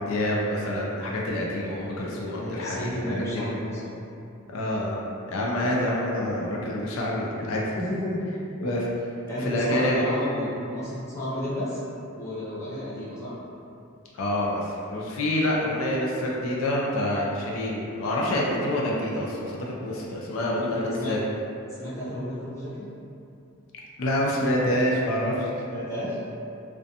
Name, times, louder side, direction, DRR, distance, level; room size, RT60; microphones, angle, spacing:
voice 1, 0.0-3.5 4.5-5.0 5.3-7.7 8.6-8.9 9.4-10.0 14.1-21.2 24.0-25.5, left 1 dB, 75° left, -3 dB, 0.4 m, -27 dB
voice 2, 1.9-4.0 7.7-8.3 9.3-11.8 12.2-13.3 20.6-21.2 21.7-22.9 25.7-26.2, left 1 dB, 15° left, -10 dB, 0.5 m, -32 dB
2.4 x 2.2 x 2.6 m, 2.7 s
head